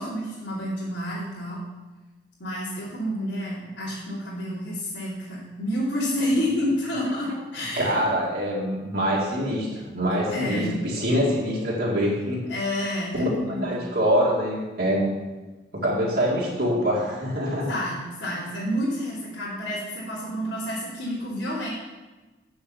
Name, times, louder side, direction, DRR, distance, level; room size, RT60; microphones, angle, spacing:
voice 1, 0.0-1.6 2.4-8.1 10.3-10.8 12.5-13.9 17.7-21.7, equal, 75° left, -9 dB, 2.8 m, -29 dB
voice 2, 7.8-12.4 13.1-15.0 15.7-17.7, equal, 50° right, -5 dB, 2.2 m, -24 dB
8.1 x 6.8 x 7.1 m, 1.2 s
head